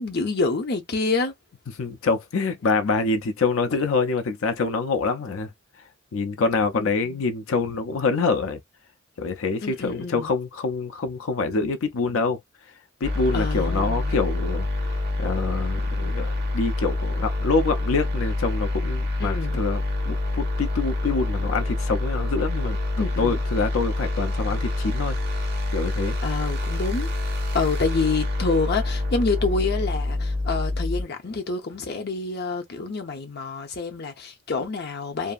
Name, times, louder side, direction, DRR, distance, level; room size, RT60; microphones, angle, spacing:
voice 1, 0.0-1.3 6.7-7.2 9.6-10.3 13.3-14.1 19.2-19.7 23.0-23.4 26.2-27.1 27.5-35.3, left 4 dB, 55° left, 0.8 m, -27 dB
voice 2, 1.8-5.5 6.1-8.6 9.2-12.4 13.0-14.7 15.2-22.8 23.2-25.2 25.7-26.2, left 4 dB, 90° left, 0.5 m, -26 dB
sound 1, 13.0-31.0, left 2 dB, 55° right, 1.2 m, -26 dB
2.7 x 2.5 x 2.4 m
head